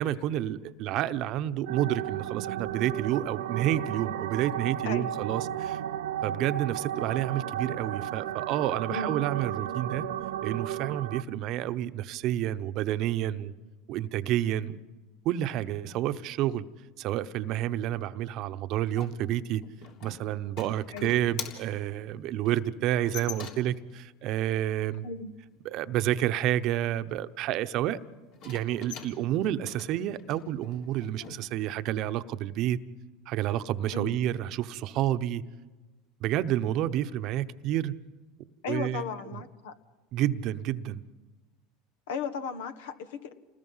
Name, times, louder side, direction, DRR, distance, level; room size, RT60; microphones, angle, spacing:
voice 1, 0.0-5.8 6.2-10.0 10.4-13.5 13.9-14.8 15.2-16.6 17.0-19.6 20.0-25.1 25.6-28.0 28.4-32.8 33.3-35.4 36.2-37.9 38.7-39.0 39.3-39.4 40.1-41.0, right 12 dB, 55° right, 0.9 m, -29 dB
sound 1, 1.7-11.2, right 11 dB, 80° right, 0.6 m, -34 dB
voice 2, 4.8-5.3 8.9-9.2 20.9-21.3 25.0-25.3 33.9-34.1 38.6-39.7 42.1-43.3, left 5 dB, 80° left, 1.5 m, -36 dB
sound 2, 18.9-23.9 28.3-31.3, left 6 dB, 60° left, 3.5 m, -44 dB
28.5 x 20.0 x 5.7 m
supercardioid pair, 100°, 0 cm